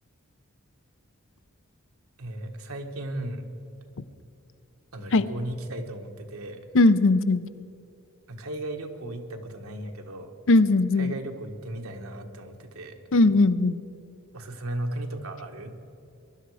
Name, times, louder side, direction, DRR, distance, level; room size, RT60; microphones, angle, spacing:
voice 1, 2.2-3.4 4.9-6.6 8.3-10.3 11.0-13.0 14.3-15.7, right 1 dB, 85° right, 4 dB, 1.5 m, -35 dB
voice 2, 6.7-7.5 10.5-11.1 13.1-13.8, left 2 dB, 65° left, 14 dB, 0.6 m, -19 dB
22.5 x 11.5 x 4.9 m, 2.7 s
head